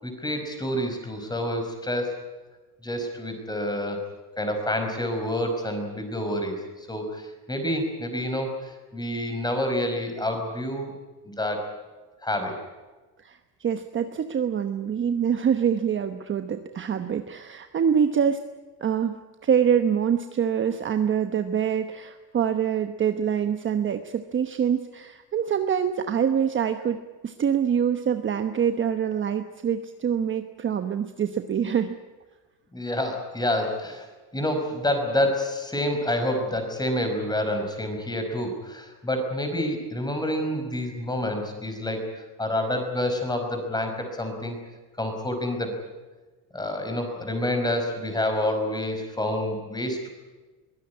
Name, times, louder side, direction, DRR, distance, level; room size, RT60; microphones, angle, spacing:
voice 1, 0.0-2.1 2.8-4.0 4.4-6.6 6.9-10.9 11.3-11.6 12.2-12.6 32.7-34.0 34.3-42.1 42.4-44.6 45.0-45.7 46.5-50.1, left 1 dB, 10° left, 5 dB, 5.3 m, -28 dB
voice 2, 13.2-18.4 18.8-19.2 19.4-27.0 27.2-32.0, right 8 dB, 30° right, 8 dB, 1.1 m, -25 dB
23.0 x 17.0 x 9.7 m, 1.3 s
cardioid pair, 135°, 41 cm